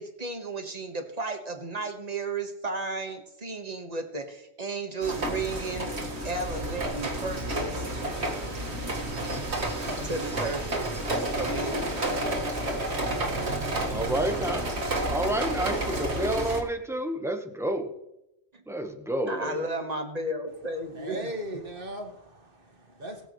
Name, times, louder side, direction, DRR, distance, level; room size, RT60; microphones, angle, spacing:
voice 1, 0.0-5.9 6.2-7.9 9.1-11.8 18.5-18.6 19.3-21.3, right 2 dB, 35° right, 5 dB, 1.6 m, -34 dB
sound 1, 5.0-16.6, right 1 dB, 70° right, 2.2 m, -30 dB
voice 2, 13.9-14.7 15.1-17.9 18.7-19.6, right 1 dB, 5° right, 5 dB, 1.2 m, -29 dB
voice 3, 20.9-23.3, equal, 50° right, 3 dB, 2.0 m, -38 dB
21.5 x 7.8 x 3.2 m, 0.90 s
omnidirectional pair, 1.2 m